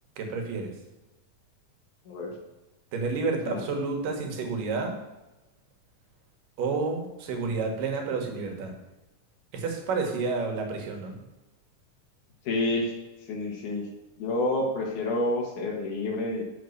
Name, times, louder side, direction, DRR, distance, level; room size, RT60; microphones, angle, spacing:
voice 1, 0.2-0.7 2.9-4.9 6.6-8.7 9.5-11.2, right 4 dB, 80° right, 3 dB, 3.0 m, -30 dB
voice 2, 12.4-12.9 13.2-13.9 14.2-16.4, left 2 dB, 70° left, 1 dB, 3.0 m, -29 dB
6.8 x 6.2 x 6.5 m, 1.0 s
omnidirectional pair, 3.8 m